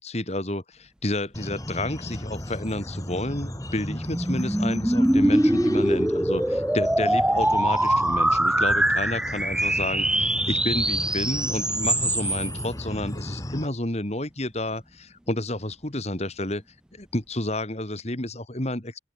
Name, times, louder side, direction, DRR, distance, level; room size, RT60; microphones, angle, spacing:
voice 1, 0.0-16.6 16.9-19.0, left 1 dB, 35° left, 2.7 m, -30 dB
sound 1, 1.3-13.7, left 1 dB, 20° left, 2.3 m, -36 dB
sound 2, 2.9-12.7, right 1 dB, 5° right, 0.5 m, -23 dB
open air
head